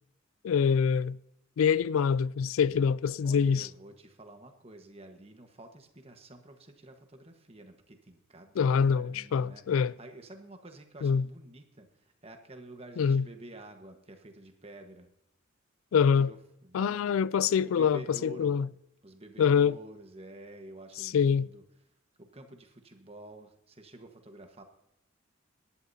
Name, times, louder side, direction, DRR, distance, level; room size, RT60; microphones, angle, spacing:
voice 1, 0.4-1.2 1.6-3.7 8.6-9.9 11.0-11.3 13.0-13.3 15.9-16.3 16.7-18.7 19.4-19.8 21.0-21.5, left 6 dB, 90° left, 0.3 m, -25 dB
voice 2, 3.2-9.6 10.0-15.1 16.2-17.2 17.6-18.5 19.0-21.6 22.2-24.6, right 2 dB, 30° right, 1.3 m, -49 dB
18.5 x 11.5 x 2.8 m
head